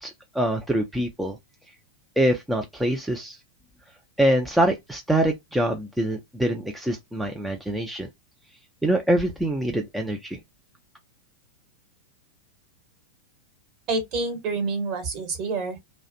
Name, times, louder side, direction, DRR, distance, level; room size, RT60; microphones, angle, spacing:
voice 1, 0.0-1.4 2.2-3.4 4.2-8.1 8.8-10.4, right 1 dB, 5° right, 0.4 m, -24 dB
voice 2, 13.9-15.8, right 3 dB, 40° right, 1.1 m, -27 dB
2.4 x 2.1 x 2.6 m
figure-of-eight pair, 90°, 0 cm